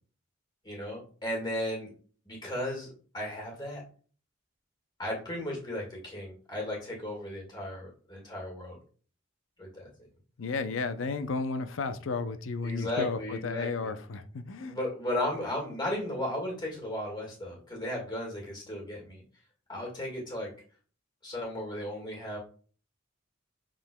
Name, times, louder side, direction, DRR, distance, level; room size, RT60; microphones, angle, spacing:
voice 1, 0.6-1.9 2.3-2.9 3.1-3.8 5.0-8.8 9.6-9.9 12.6-13.9 14.6-19.2 19.7-20.5 21.2-22.4, left 1 dB, 20° left, 1.8 m, -35 dB
voice 2, 10.4-14.8, left 4 dB, 75° left, 0.5 m, -33 dB
6.4 x 3.7 x 2.2 m
head